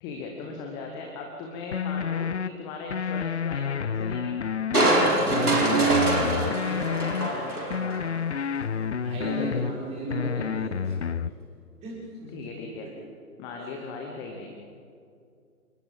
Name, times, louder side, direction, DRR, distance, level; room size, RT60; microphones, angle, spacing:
voice 1, 0.0-4.4 5.0-5.3 6.0-8.1 9.2-9.7 12.3-12.9 13.4-14.5, left 4 dB, 10° left, 1 dB, 1.0 m, -38 dB
sound 1, 1.7-2.5 2.9-4.9 5.3-7.3 7.7-9.7 10.1-11.3, left 7 dB, 50° left, 0.6 m, -29 dB
Crushing, 4.7-8.1 8.6-8.7, right 2 dB, 75° right, 4.9 m, -24 dB
voice 2, 5.2-6.5 9.0-11.0 11.8-12.5 12.8-12.9, right 2 dB, 15° right, -4 dB, 6.2 m, -36 dB
28.0 x 20.0 x 5.4 m, 2.4 s
figure-of-eight pair, 135°, 45 cm